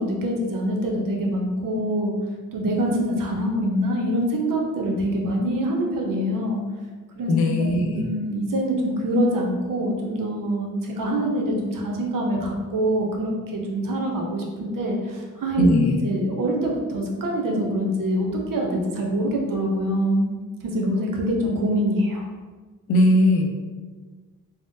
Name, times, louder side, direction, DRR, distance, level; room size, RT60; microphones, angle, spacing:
voice 1, 0.0-2.1 2.5-6.6 7.2-20.3 20.7-22.2, equal, 60° right, 0 dB, 0.7 m, -24 dB
voice 2, 7.3-8.0 15.6-16.0 22.9-23.4, left 1 dB, 85° left, 2 dB, 0.5 m, -19 dB
3.4 x 2.0 x 2.6 m, 1.4 s
supercardioid pair, 50°, 36 cm